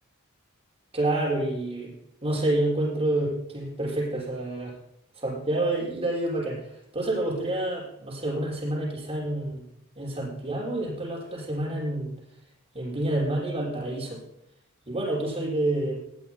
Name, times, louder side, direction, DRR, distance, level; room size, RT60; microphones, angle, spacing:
voice 1, 0.9-1.9 2.2-4.8 5.2-9.7 10.0-12.1 12.7-14.2 14.9-16.0, right 1 dB, 30° right, -5 dB, 6.3 m, -28 dB
19.5 x 16.0 x 2.2 m, 0.80 s
head